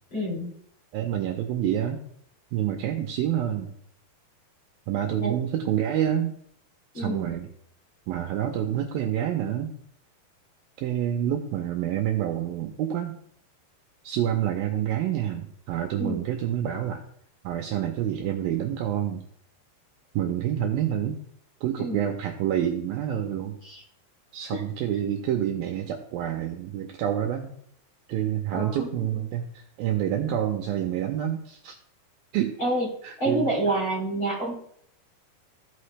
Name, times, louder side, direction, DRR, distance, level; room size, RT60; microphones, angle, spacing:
voice 1, 0.1-0.5 5.2-5.3 6.9-7.3 16.0-16.2 21.8-22.0 23.6-23.8 24.5-24.6 28.5-29.2 32.6-32.9 33.2-34.5, right 1 dB, 30° left, -5 dB, 3.6 m, -28 dB
voice 2, 0.9-2.0 2.5-3.7 4.9-6.4 6.9-7.5 8.1-9.8 10.8-13.2 14.0-17.0 17.4-19.2 20.1-21.2 21.6-23.6 24.3-27.5 28.1-31.7 32.3-32.6 33.0-33.5, right 10 dB, 80° right, 3 dB, 2.2 m, -28 dB
15.0 x 5.8 x 3.3 m, 0.65 s
omnidirectional pair, 4.9 m